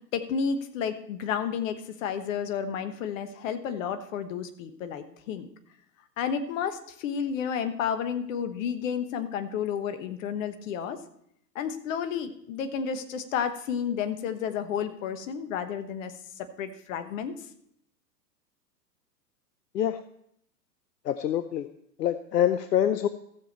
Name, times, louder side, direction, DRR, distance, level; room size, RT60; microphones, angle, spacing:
voice 1, 0.1-5.5 6.2-11.0 11.5-16.1 16.6-17.3, left 7 dB, 50° left, 10 dB, 1.3 m, -31 dB
voice 2, 21.1-21.7 22.0-23.1, left 10 dB, 75° left, 12 dB, 0.7 m, -25 dB
15.0 x 7.2 x 4.4 m, 0.71 s
figure-of-eight pair, 105°, 50 cm